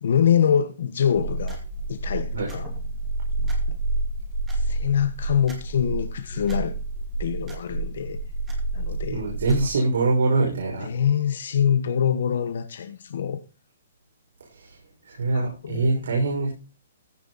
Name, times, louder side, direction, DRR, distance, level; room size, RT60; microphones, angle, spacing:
voice 1, 0.0-1.6 1.9-2.7 3.4-3.8 4.5-6.7 7.2-8.2 8.7-9.2 10.8-13.4 15.3-15.9, left 8 dB, 60° left, 1.2 m, -24 dB
sound 1, 1.1-9.7, right 2 dB, 10° right, 2.3 m, -29 dB
voice 2, 9.1-10.9 14.5-14.8 15.1-16.5, right 3 dB, 90° right, 5.4 m, -23 dB
15.0 x 6.8 x 4.1 m
hypercardioid pair, 180°, 0 cm